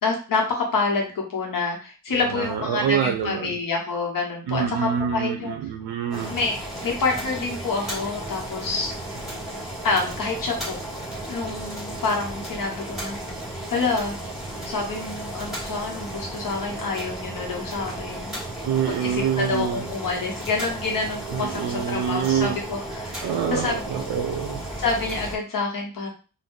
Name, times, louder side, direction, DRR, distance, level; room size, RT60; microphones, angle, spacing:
voice 1, 0.0-5.6 6.3-6.6 6.8-8.9 9.8-10.8 11.3-13.2 13.7-14.2 14.7-18.4 18.9-23.9 24.8-26.1, left 3 dB, 60° left, 0 dB, 0.9 m, -27 dB
voice 2, 2.1-3.6 4.5-6.4 18.6-19.8 21.3-22.6 23.2-24.6, right 8 dB, 85° right, 4 dB, 0.5 m, -26 dB
Boiling, 6.1-25.4, right 1 dB, ahead, 1.4 m, -34 dB
2.6 x 2.2 x 3.6 m, 0.35 s
wide cardioid pair, 145°, 38 cm